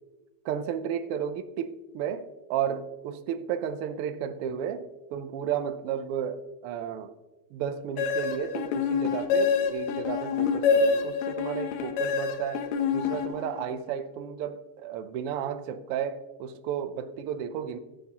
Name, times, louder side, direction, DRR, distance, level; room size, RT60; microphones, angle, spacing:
voice 1, 0.4-7.2 7.5-17.8, right 8 dB, 90° right, 1.2 m, -33 dB
sound 1, 8.0-13.8, left 5 dB, 75° left, 1.9 m, -27 dB
14.0 x 8.4 x 2.9 m
omnidirectional pair, 3.4 m